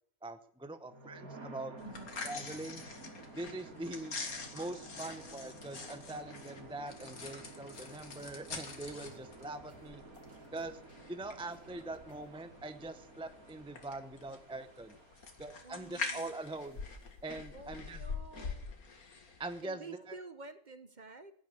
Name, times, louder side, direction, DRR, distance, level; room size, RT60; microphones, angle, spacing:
voice 1, 0.2-1.7 2.2-2.8 3.3-4.2 4.5-10.0 10.5-10.8 11.1-15.0 15.4-16.8 17.2-18.0 19.4-20.2, right 2 dB, 5° right, 9 dB, 0.6 m, -43 dB
sound 1, 0.8-16.7, right 2 dB, 90° right, 3.2 m, -53 dB
sound 2, 1.8-19.6, left 4 dB, 85° left, 2.5 m, -45 dB
sound 3, 7.7-12.4, right 2 dB, 60° right, 3.4 m, -67 dB
voice 2, 15.6-16.4 17.5-18.7 19.6-21.3, right 3 dB, 35° right, 11 dB, 1.1 m, -50 dB
16.5 x 9.8 x 8.4 m, 0.63 s
omnidirectional pair, 1.5 m